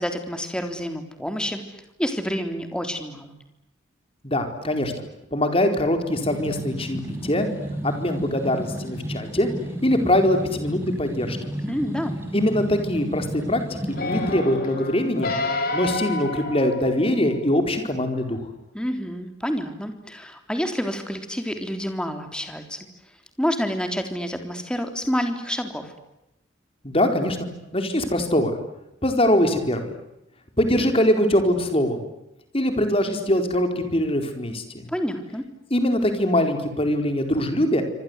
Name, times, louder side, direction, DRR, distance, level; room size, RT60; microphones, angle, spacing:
voice 1, 0.0-1.6 2.0-3.3 11.7-12.2 18.7-22.9 23.4-25.9 34.9-35.4, equal, 5° left, 6 dB, 3.6 m, -28 dB
voice 2, 4.2-4.9 5.3-7.5 7.8-9.5 9.8-11.5 12.3-15.3 15.7-18.4 26.8-27.5 27.7-28.5 29.0-29.9 30.6-32.1 32.5-34.9 35.7-37.8, left 1 dB, 30° left, 6 dB, 4.5 m, -22 dB
sound 1, 6.0-14.3, equal, 10° right, 6.5 m, -33 dB
sound 2, 13.9-17.4 18.0-18.1, left 2 dB, 50° left, 5.6 m, -29 dB
27.5 x 26.0 x 8.2 m, 0.90 s
head